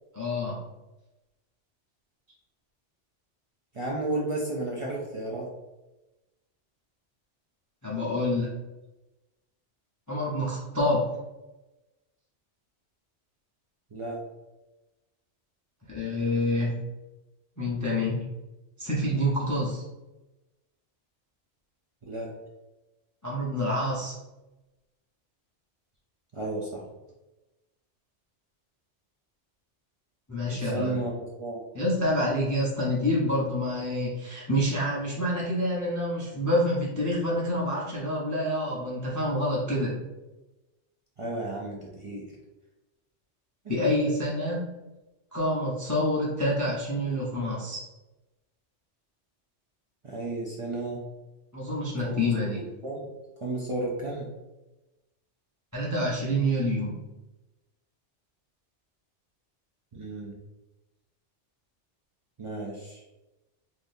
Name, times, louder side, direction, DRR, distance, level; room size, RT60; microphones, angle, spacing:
voice 1, 0.1-0.6 7.8-8.5 10.1-11.1 15.9-16.8 17.6-18.2 18.8-19.8 23.2-24.1 30.3-31.0 31.7-40.0 43.7-44.7 45.3-47.8 51.5-52.6 55.7-57.0, left 1 dB, 20° left, -6 dB, 0.5 m, -27 dB
voice 2, 3.7-5.5 13.9-14.2 22.0-22.3 26.3-26.8 30.5-31.6 41.2-42.3 50.0-51.0 52.1-52.2 52.5-53.1 53.4-54.3 59.9-60.4 62.4-63.0, right 2 dB, 50° right, -3 dB, 0.3 m, -33 dB
3.6 x 2.7 x 2.6 m, 1.0 s
omnidirectional pair, 1.2 m